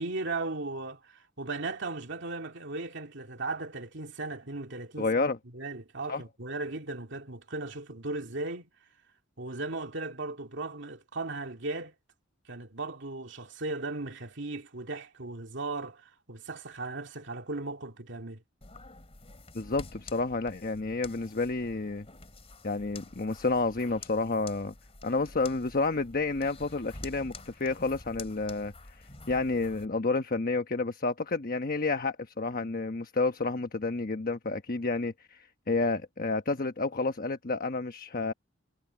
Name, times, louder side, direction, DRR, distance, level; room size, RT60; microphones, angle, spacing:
voice 1, 0.0-5.1 5.5-8.7 9.4-11.9 12.5-18.4, right 3 dB, 65° right, 2.4 m, -37 dB
voice 2, 5.0-5.4 6.1-6.2 19.5-22.1 22.6-24.7 25.0-38.3, left 3 dB, 45° left, 1.1 m, -30 dB
sound 1, 18.6-29.9, left 3 dB, 30° left, 2.8 m, -49 dB
head